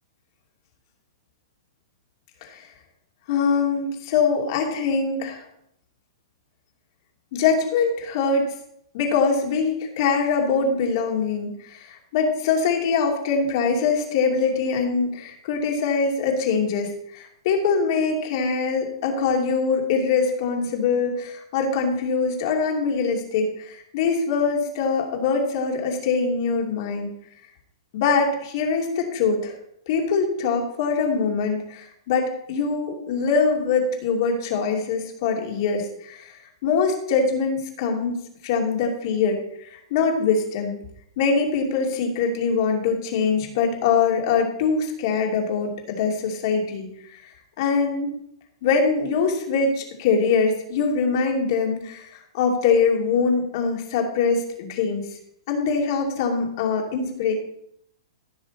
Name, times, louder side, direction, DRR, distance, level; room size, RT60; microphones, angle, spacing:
voice 1, 3.3-5.4 7.3-8.5 8.9-27.1 27.9-29.5 29.9-36.3 36.6-38.2 38.4-40.8 41.2-46.9 47.2-47.3 47.6-48.2 48.6-55.1 55.5-57.3, left 5 dB, 50° left, 1 dB, 2.7 m, -23 dB
15.5 x 6.3 x 4.2 m, 0.76 s
hypercardioid pair, 145°, 3 cm